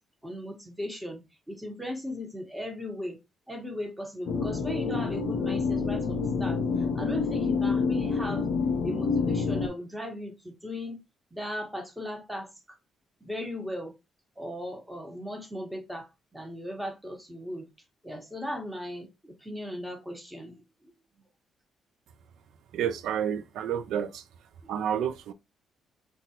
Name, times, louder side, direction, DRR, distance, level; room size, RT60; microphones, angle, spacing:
voice 1, 0.2-3.2 3.5-8.5 8.8-11.0 11.3-12.8 13.2-13.9 14.4-17.7 18.0-20.6 24.6-24.7, equal, 5° right, 1.1 m, -37 dB
sound 1, 4.3-9.7, left 5 dB, 75° left, 0.6 m, -27 dB
voice 2, 22.7-24.2 24.7-25.3, right 9 dB, 80° right, 0.4 m, -30 dB
3.8 x 2.3 x 2.8 m
cardioid pair, 90°, 0 cm